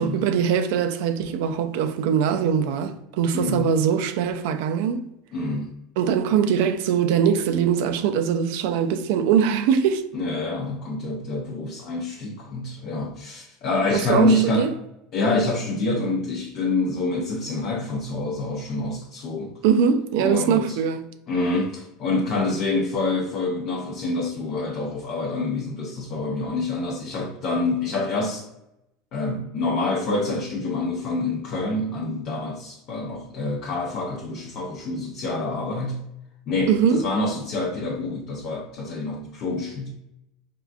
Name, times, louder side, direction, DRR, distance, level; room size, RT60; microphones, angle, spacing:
voice 1, 0.0-5.0 6.0-10.0 13.9-14.7 19.6-21.0 36.7-37.0, right 7 dB, 70° right, 0.3 m, -22 dB
voice 2, 3.3-3.7 5.3-5.7 10.1-14.7 15.1-19.5 20.2-20.8 21.3-28.5 29.1-36.0 36.5-39.9, left 2 dB, 55° left, 0.5 m, -26 dB
3.5 x 2.4 x 2.3 m
supercardioid pair, 100°, 0 cm